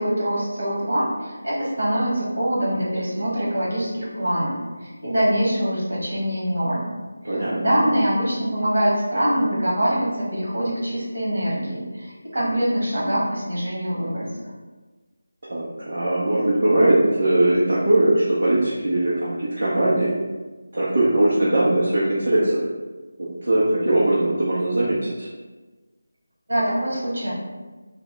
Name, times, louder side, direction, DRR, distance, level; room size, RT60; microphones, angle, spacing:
voice 1, 0.0-6.9 7.2-14.5 26.5-27.3, equal, 55° right, -6 dB, 1.5 m, -24 dB
voice 2, 7.2-7.6 15.4-20.1 20.7-22.6 23.2-25.3, right 1 dB, 40° right, -8 dB, 0.6 m, -20 dB
3.4 x 2.1 x 3.6 m, 1.2 s
figure-of-eight pair, 180°, 0 cm